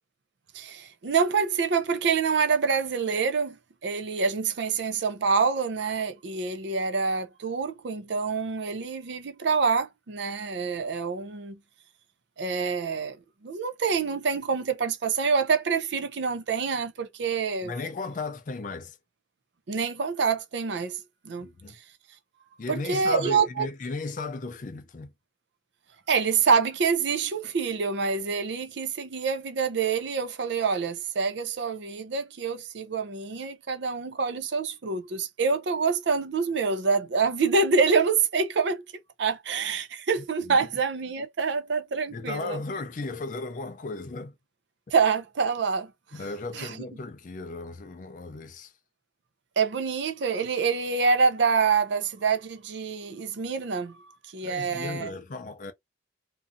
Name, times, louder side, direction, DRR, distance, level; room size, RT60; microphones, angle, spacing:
voice 1, 0.5-11.6 12.4-17.7 19.7-21.0 21.2-21.5 22.7-23.7 26.1-38.8 39.2-42.6 44.9-45.9 46.5-46.8 49.6-55.1, right 5 dB, 65° right, 0.5 m, -26 dB
voice 2, 17.6-19.0 21.4-21.8 22.6-25.1 40.4-40.6 42.1-44.3 46.1-48.7 54.4-55.7, left 3 dB, 40° left, 0.4 m, -35 dB
2.6 x 2.4 x 2.5 m
head